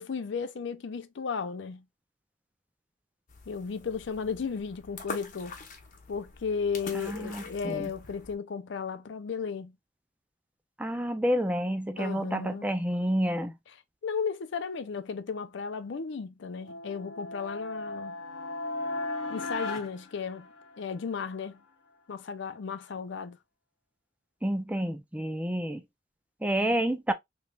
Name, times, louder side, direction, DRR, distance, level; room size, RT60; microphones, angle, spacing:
voice 1, 0.0-1.8 3.5-5.6 6.1-9.7 12.0-12.7 14.0-18.2 19.3-20.5 20.8-21.6 22.1-23.4, left 5 dB, 65° left, 0.5 m, -34 dB
sound 1, 3.3-8.4, left 3 dB, 45° left, 0.9 m, -44 dB
voice 2, 6.9-7.9 10.8-13.5 24.4-25.8 26.4-27.1, equal, 5° right, 0.4 m, -29 dB
sound 2, 16.6-21.0, left 2 dB, 85° left, 0.9 m, -36 dB
3.2 x 3.1 x 2.3 m
head